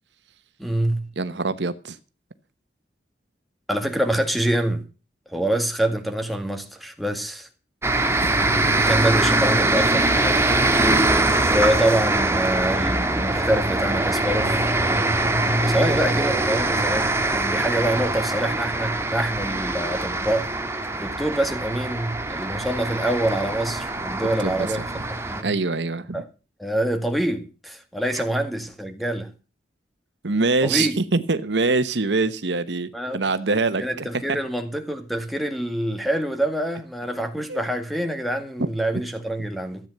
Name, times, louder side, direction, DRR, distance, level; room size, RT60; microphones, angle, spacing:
voice 1, 0.6-1.1 3.7-4.8 5.3-7.5 8.8-10.5 11.5-14.7 15.6-20.5 21.0-24.8 25.3-25.5 26.1-26.2 26.6-29.3 30.6-31.0 32.9-33.2 33.8-39.8, right 1 dB, ahead, 2.0 m, -25 dB
voice 2, 1.2-2.0 24.4-24.7 25.4-26.2 28.1-28.2 30.2-34.1 37.5-37.6 38.6-38.7, right 3 dB, 90° right, 1.0 m, -24 dB
sound 1, 7.8-25.4, right 2 dB, 15° right, 1.4 m, -23 dB
14.0 x 8.9 x 6.7 m
head